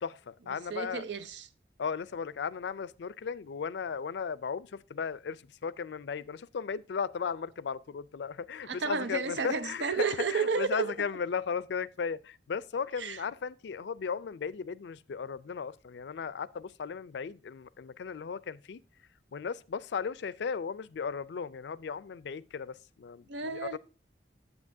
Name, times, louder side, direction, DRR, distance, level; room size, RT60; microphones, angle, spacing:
voice 1, 0.0-1.0 1.8-18.8 19.3-23.8, left 6 dB, 75° left, 0.4 m, -36 dB
voice 2, 0.5-1.5 8.6-10.9 13.0-13.2 23.3-23.8, right 5 dB, 90° right, 0.7 m, -32 dB
9.7 x 7.9 x 2.7 m
head